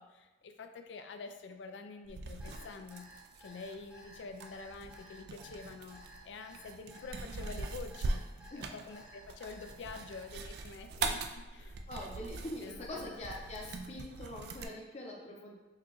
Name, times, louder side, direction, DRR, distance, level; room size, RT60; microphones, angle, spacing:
voice 1, 0.0-3.1 3.4-8.2 8.5-11.8 12.6-13.1, left 4 dB, 85° left, 7 dB, 0.4 m, -47 dB
sound 1, 2.0-14.7, right 3 dB, 60° right, 0.3 m, -42 dB
Alarm, 2.4-10.2, equal, 5° right, 0.7 m, -55 dB
voice 2, 11.9-15.5, left 1 dB, 40° left, -2 dB, 0.7 m, -43 dB
4.7 x 2.2 x 3.1 m, 1.2 s
head